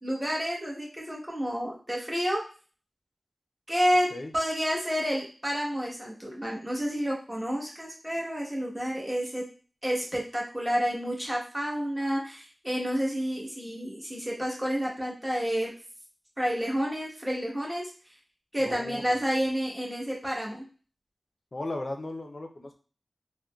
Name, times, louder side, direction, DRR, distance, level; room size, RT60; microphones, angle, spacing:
voice 1, 0.0-2.4 3.7-4.1 4.3-9.5 9.8-15.7 16.4-17.9 18.5-20.7, equal, 15° right, -3 dB, 1.1 m, -30 dB
voice 2, 18.6-19.0 21.5-22.7, left 2 dB, 50° left, 5 dB, 0.5 m, -36 dB
3.6 x 2.1 x 2.3 m, 0.39 s
wide cardioid pair, 65°, 0 cm